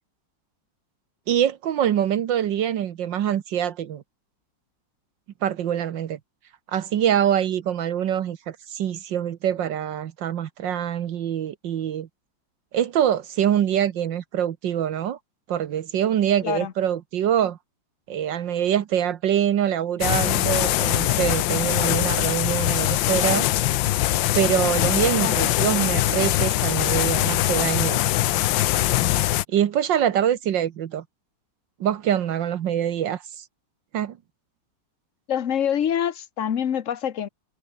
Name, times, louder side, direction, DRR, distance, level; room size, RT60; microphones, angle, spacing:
voice 1, 1.3-4.0 5.4-6.2 6.7-12.1 12.7-15.2 15.5-17.6 18.1-23.5 24.3-28.0 29.5-31.0 31.8-33.5 33.9-34.2, right 10 dB, 75° right, 1.7 m, -24 dB
sound 1, 20.0-29.4, left 15 dB, 90° left, 1.4 m, -22 dB
voice 2, 35.3-37.3, left 9 dB, 50° left, 1.3 m, -25 dB
omnidirectional pair, 2.0 m